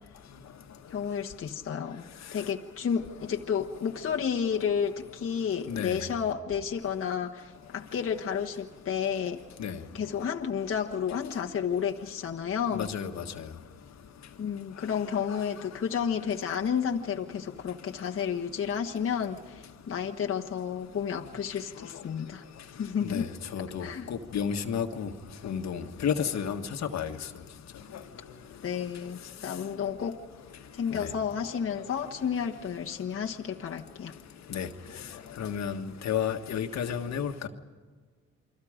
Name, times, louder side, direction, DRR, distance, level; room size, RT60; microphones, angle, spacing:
voice 1, 0.9-2.0 2.3-9.4 9.9-12.9 14.4-22.4 22.8-23.3 23.8-24.1 28.6-30.2 30.7-34.1, left 7 dB, 45° left, 1.3 m, -31 dB
voice 2, 5.7-6.0 9.6-9.8 12.7-13.2 23.0-23.3 23.5-25.1 25.4-26.6 26.9-27.1 30.9-31.1 34.5-34.7 35.4-37.5, left 7 dB, 65° left, 1.6 m, -31 dB
29.0 x 24.0 x 5.1 m
cardioid pair, 90°, 30 cm